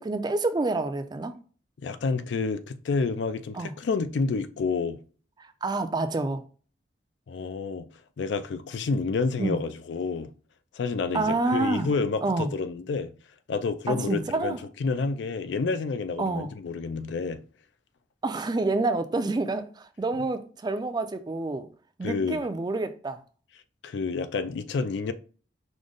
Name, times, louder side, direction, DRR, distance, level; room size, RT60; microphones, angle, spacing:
voice 1, 0.0-1.3 3.5-3.7 5.4-6.4 9.4-9.6 11.1-11.9 12.2-12.5 13.9-14.6 16.2-16.5 18.2-21.7 22.0-23.2, right 3 dB, 25° right, 0.4 m, -28 dB
voice 2, 1.8-5.0 7.3-7.9 8.2-10.3 10.7-13.1 13.5-17.4 22.0-22.4 23.8-25.1, left 4 dB, 75° left, 0.4 m, -29 dB
4.9 x 2.1 x 3.8 m
head